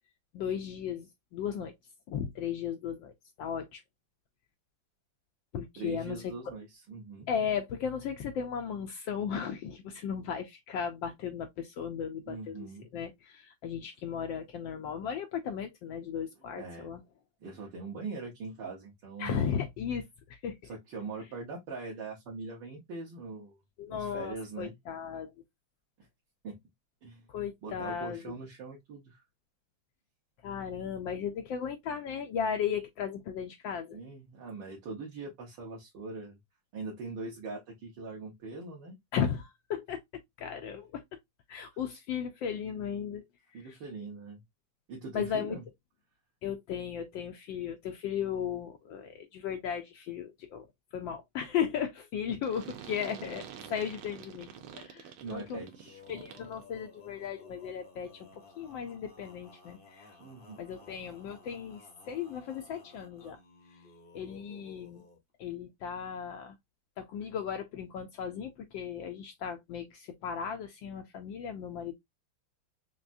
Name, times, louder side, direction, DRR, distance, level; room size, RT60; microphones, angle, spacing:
voice 1, 0.3-1.8 2.1-3.8 5.5-6.3 7.3-17.0 19.2-20.7 23.8-25.3 27.3-28.4 30.4-34.0 39.1-41.0 41.5-43.8 45.1-45.6 46.4-53.4 53.7-55.6 56.1-60.1 60.6-63.4 63.7-63.8 64.1-65.0 65.4-66.6 67.0-71.9, left 8 dB, 75° left, 1.2 m, -36 dB
voice 2, 5.8-7.3 12.3-12.9 16.5-16.9 17.4-19.5 20.7-23.6 23.9-24.7 26.4-26.6 27.0-27.3 27.6-29.2 33.9-36.4 36.7-39.0 43.5-44.4 44.9-45.6 52.3-52.4 55.2-56.0 60.2-60.6, right 3 dB, 60° right, 1.7 m, -42 dB
sound 1, 52.4-56.6, right 8 dB, 85° right, 1.6 m, -47 dB
Male singing, 55.4-65.2, left 3 dB, 45° left, 0.7 m, -56 dB
5.8 x 2.1 x 2.5 m
omnidirectional pair, 2.3 m